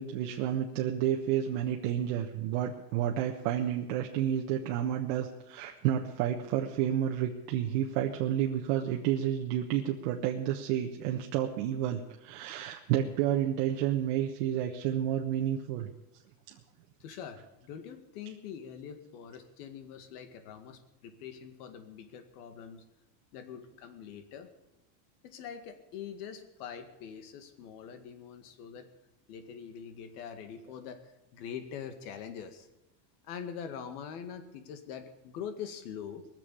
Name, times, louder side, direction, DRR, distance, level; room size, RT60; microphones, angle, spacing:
voice 1, 0.0-15.9 16.5-16.6, right 10 dB, 60° right, 1 dB, 1.3 m, -30 dB
voice 2, 17.0-22.8 23.3-24.5 25.2-28.9 29.3-31.0 31.3-32.7 33.3-36.3, left 7 dB, 70° left, 9 dB, 2.1 m, -44 dB
20.5 x 7.3 x 8.6 m, 0.93 s
supercardioid pair, 165°, 47 cm